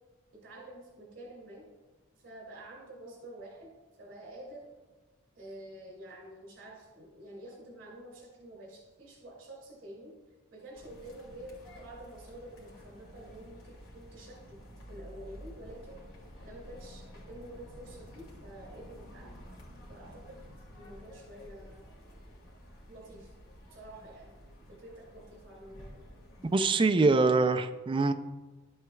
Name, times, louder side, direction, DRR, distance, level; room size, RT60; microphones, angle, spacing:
voice 1, 0.3-1.7 2.2-3.7 4.0-4.7 5.3-10.1 10.5-14.6 14.9-16.0 16.4-19.3 19.9-20.4 20.7-21.9 22.9-23.3 23.7-24.4 24.7-26.1, right 1 dB, 70° right, -2 dB, 2.5 m, -48 dB
sound 1, 10.7-26.7, equal, 85° left, 2.1 m, -51 dB
voice 2, 26.5-28.1, right 3 dB, 25° right, 8 dB, 0.4 m, -24 dB
12.0 x 7.7 x 2.3 m, 1.2 s
head